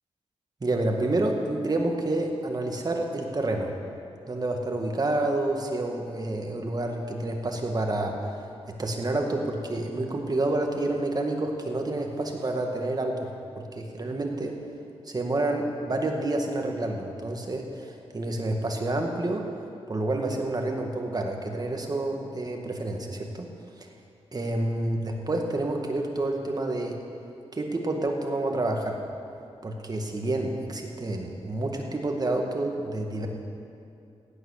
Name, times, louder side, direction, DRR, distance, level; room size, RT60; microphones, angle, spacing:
voice 1, 0.6-3.7 4.3-8.4 8.7-13.3 13.6-14.6 15.1-19.4 19.9-23.5 23.8-23.9 24.3-27.0 27.5-29.1 29.6-33.3, right 2 dB, 35° right, 2 dB, 1.9 m, -29 dB
15.5 x 9.3 x 6.6 m, 2.6 s
cardioid pair, 75°, 11 cm